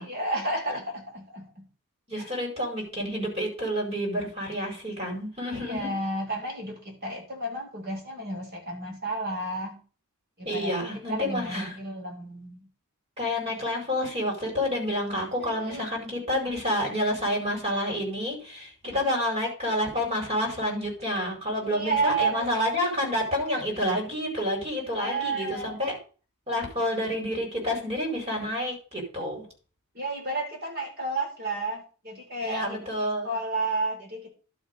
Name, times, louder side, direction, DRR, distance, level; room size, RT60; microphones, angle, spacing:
voice 1, 0.0-1.6 2.2-2.3 5.5-9.8 10.4-12.7 15.4-15.9 18.8-19.1 21.6-23.1 25.0-25.8 27.8-27.9 29.9-34.3, right 2 dB, 45° right, 3 dB, 3.5 m, -32 dB
voice 2, 2.1-5.9 10.4-11.7 13.2-26.0 26.5-29.5 32.4-33.3, equal, 30° right, 0 dB, 4.9 m, -29 dB
11.5 x 6.0 x 5.3 m, 0.38 s
head